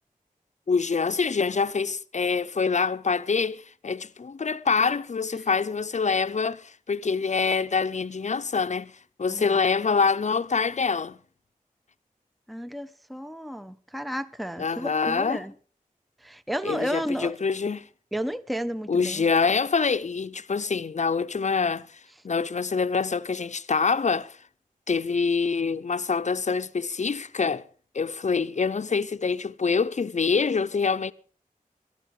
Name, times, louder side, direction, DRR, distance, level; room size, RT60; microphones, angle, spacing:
voice 1, 0.7-8.9 9.2-11.2 14.6-15.4 16.6-17.9 18.9-22.0 22.2-24.4 24.9-27.6 27.9-31.1, left 5 dB, 55° left, 0.6 m, -25 dB
voice 2, 9.3-9.6 12.5-15.5 16.2-17.3 18.1-19.2, equal, ahead, 0.6 m, -32 dB
18.5 x 12.0 x 4.8 m
wide cardioid pair, 75°, 15 cm